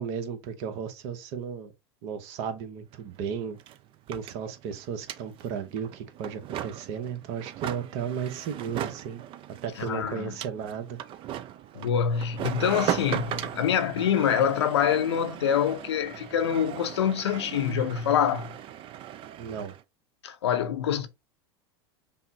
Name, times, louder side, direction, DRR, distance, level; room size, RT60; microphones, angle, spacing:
voice 1, 0.0-1.7 2.0-3.6 4.1-9.2 9.6-11.0 19.4-19.7, right 7 dB, 55° right, 0.8 m, -34 dB
sound 1, 2.9-3.0 3.2-19.8, right 11 dB, 40° right, 0.4 m, -38 dB
voice 2, 9.8-10.3 11.7-18.5 20.2-21.1, left 8 dB, 80° left, 0.7 m, -25 dB
5.5 x 2.0 x 2.7 m
hypercardioid pair, 95°, 14 cm